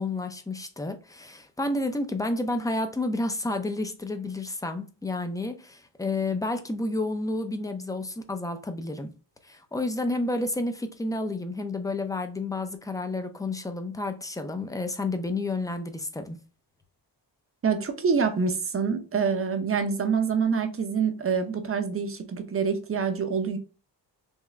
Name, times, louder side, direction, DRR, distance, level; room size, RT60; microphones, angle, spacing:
voice 1, 0.0-9.1 9.4-16.4, left 2 dB, 10° left, 0.5 m, -30 dB
voice 2, 17.6-23.6, right 5 dB, 30° right, 0.6 m, -26 dB
3.6 x 3.0 x 3.2 m
wide cardioid pair, 125°, 43 cm